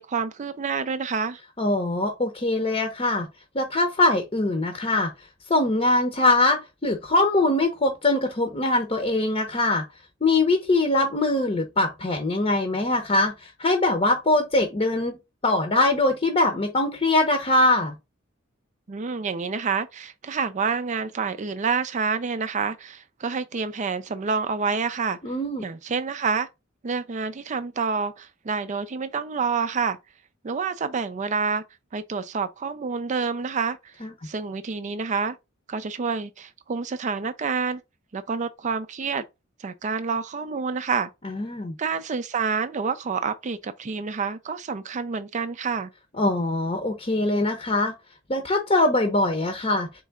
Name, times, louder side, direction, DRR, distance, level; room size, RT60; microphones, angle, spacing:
voice 1, 0.0-1.4 18.9-25.2 25.6-26.5 26.8-30.0 30.4-31.6 31.9-33.9 34.2-35.4 35.7-37.8 38.1-39.2 39.6-41.1 41.8-45.9, right 5 dB, 40° right, 0.4 m, -28 dB
voice 2, 1.6-3.3 3.5-5.1 5.5-9.8 10.2-15.2 15.4-17.9 25.2-25.6 34.0-34.1 41.2-41.7 46.2-47.9 48.3-49.9, left 2 dB, 30° left, 0.8 m, -22 dB
4.6 x 3.2 x 3.6 m
head